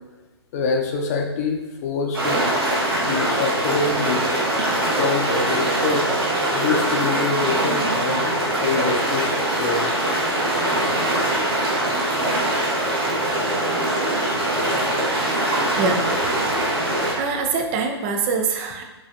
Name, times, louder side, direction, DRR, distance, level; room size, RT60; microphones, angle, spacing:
voice 1, 0.5-2.5 3.1-4.4 5.0-6.1 6.5-8.3 8.6-9.3 9.6-9.9, left 4 dB, 35° left, 2 dB, 0.6 m, -25 dB
sound 1, 2.1-17.1, right 1 dB, 60° right, 1.3 m, -22 dB
voice 2, 15.8-16.1 16.9-18.8, right 4 dB, 20° right, 4 dB, 0.4 m, -24 dB
5.3 x 3.2 x 2.5 m, 1.2 s
figure-of-eight pair, 120°, 14 cm